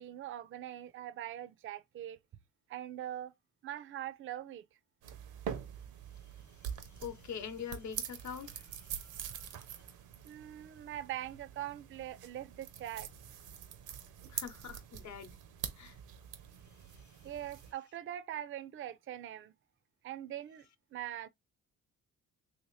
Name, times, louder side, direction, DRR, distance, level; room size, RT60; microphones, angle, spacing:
voice 1, 0.0-2.2 2.7-3.3 3.6-4.6 10.2-13.1 14.2-14.3 17.2-19.5 20.0-20.7 20.9-21.3, right 12 dB, 45° right, 0.4 m, -42 dB
Wrist watch open and close, 5.0-17.7, right 9 dB, 85° right, 0.7 m, -45 dB
voice 2, 6.9-9.6 14.3-15.4 15.7-16.0 16.9-17.3, left 7 dB, 70° left, 0.9 m, -45 dB
3.2 x 2.8 x 3.1 m
cardioid pair, 90°, 30 cm